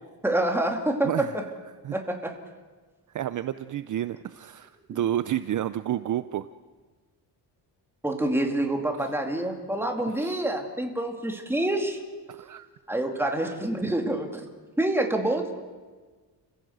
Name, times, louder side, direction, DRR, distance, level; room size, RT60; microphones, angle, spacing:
voice 1, 0.2-1.5 1.9-2.3 4.9-5.0 8.0-12.0 12.9-14.4 14.8-15.5, right 1 dB, 5° right, 3 dB, 2.6 m, -27 dB
voice 2, 1.0-1.4 1.8-2.0 3.1-6.5 9.0-9.1 10.2-10.4 12.3-12.7, right 11 dB, 45° right, 13 dB, 0.6 m, -30 dB
29.5 x 16.0 x 8.0 m, 1.4 s
cardioid pair, 155°, 42 cm